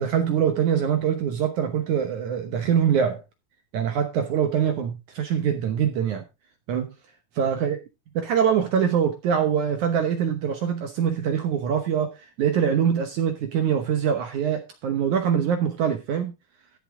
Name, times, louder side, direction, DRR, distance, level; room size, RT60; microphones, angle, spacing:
voice 1, 0.0-3.2 3.7-6.2 6.7-6.9 7.4-7.8 8.2-16.3, right 8 dB, 70° right, 1.8 m, -24 dB
14.0 x 7.2 x 3.7 m
omnidirectional pair, 4.8 m